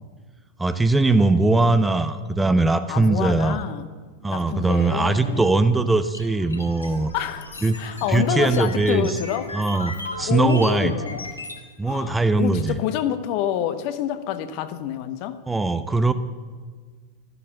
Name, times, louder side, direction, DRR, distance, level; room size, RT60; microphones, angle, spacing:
voice 1, 0.6-3.6 4.2-7.1 7.6-7.8 8.1-9.2 9.5-10.9 11.8-12.8 15.5-16.1, right 3 dB, 10° right, 11 dB, 0.7 m, -20 dB
voice 2, 2.9-3.9 4.3-5.4 7.1-7.5 7.8-9.5 10.3-11.3 11.9-15.4, left 10 dB, 45° left, 11 dB, 1.0 m, -27 dB
sound 1, 6.1-11.6, left 2 dB, 80° left, 1.7 m, -36 dB
13.0 x 12.0 x 7.4 m, 1.5 s
figure-of-eight pair, 90°, 0 cm